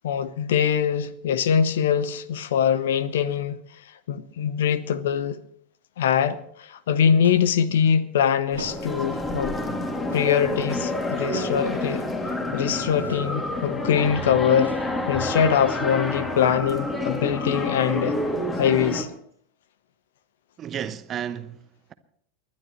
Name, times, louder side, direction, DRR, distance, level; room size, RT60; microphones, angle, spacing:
voice 1, 0.0-3.6 4.1-5.4 6.0-9.5 10.1-12.0 12.5-14.7 15.1-18.2 18.6-19.1, left 8 dB, 65° left, 1.0 m, -23 dB
sound 1, 7.2-7.6 8.6-9.1 10.1-10.4 11.3-11.7 13.0-13.4 14.5-15.2, right 3 dB, 85° right, 0.9 m, -40 dB
sound 2, 8.5-19.0, left 2 dB, 20° left, 2.5 m, -28 dB
voice 2, 20.6-21.9, right 9 dB, 30° right, 1.1 m, -33 dB
30.0 x 11.5 x 3.1 m
figure-of-eight pair, 85°, 0 cm